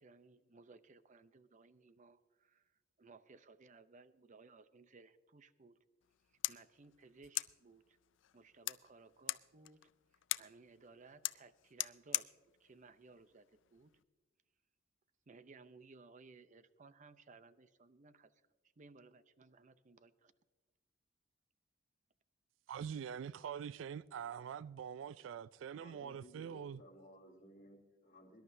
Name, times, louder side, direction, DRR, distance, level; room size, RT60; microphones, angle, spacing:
voice 1, 0.0-5.8 6.3-8.0 8.3-12.3 12.6-13.9 15.3-18.4 18.8-20.3, right 3 dB, 40° right, 0.6 m, -60 dB
sound 1, 6.0-14.0, left 16 dB, 75° left, 0.4 m, -44 dB
voice 2, 22.7-26.8, right 8 dB, 85° right, 0.3 m, -44 dB
voice 3, 25.8-28.4, equal, 45° left, 2.8 m, -59 dB
23.0 x 11.5 x 2.7 m
head